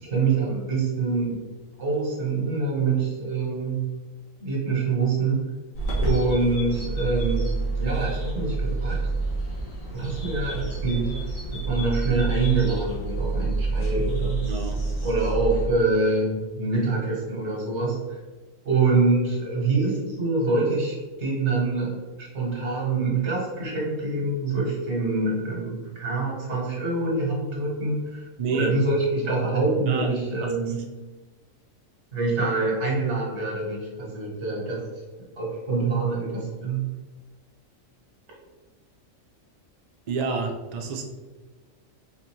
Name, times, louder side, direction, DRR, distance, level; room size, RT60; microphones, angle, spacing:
voice 1, 0.0-1.4 1.8-3.8 4.4-5.4 6.0-9.0 9.9-11.1 11.7-14.4 15.0-18.2 18.6-30.8 32.1-34.8 35.4-36.8, right 3 dB, 60° right, -3 dB, 1.6 m, -25 dB
sound 1, 5.7-15.7, right 3 dB, 80° left, 1.7 m, -28 dB
voice 2, 14.4-14.8 28.4-28.7 29.9-30.1 30.4-30.5 40.1-41.0, right 4 dB, 80° right, 3 dB, 0.3 m, -28 dB
4.2 x 2.6 x 4.4 m, 1.3 s
omnidirectional pair, 1.4 m